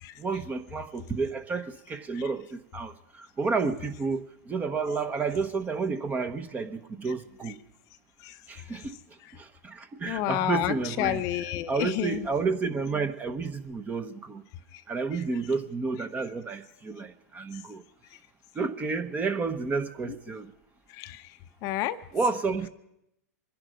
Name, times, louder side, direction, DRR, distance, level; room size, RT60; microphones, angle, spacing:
voice 1, 0.2-7.6 8.5-9.0 9.3-11.2 11.7-14.5 14.9-17.8 18.5-20.5 22.1-22.7, right 4 dB, 20° right, 1.1 m, -31 dB
voice 2, 10.0-12.3 14.7-14.8 20.9-21.3 21.6-22.0, left 13 dB, 40° left, 0.8 m, -30 dB
25.0 x 11.0 x 5.2 m
hypercardioid pair, 125°, 9 cm